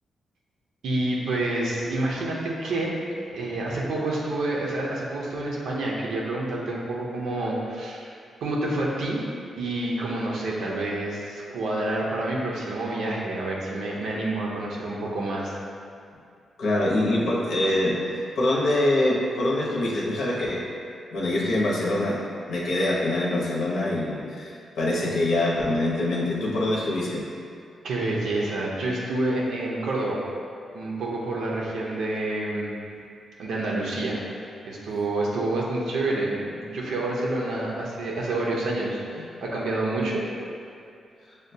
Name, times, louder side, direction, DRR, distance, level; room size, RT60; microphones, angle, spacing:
voice 1, 0.8-2.9 3.3-8.2 8.4-9.2 9.6-15.5 27.8-30.2 30.7-32.7 33.4-40.3, right 2 dB, 85° right, -3 dB, 0.6 m, -28 dB
voice 2, 16.6-18.0 18.4-20.6 21.1-22.2 22.5-27.2, left 1 dB, 75° left, -5 dB, 0.7 m, -24 dB
6.3 x 2.2 x 2.7 m, 2.4 s
wide cardioid pair, 170°, 0 cm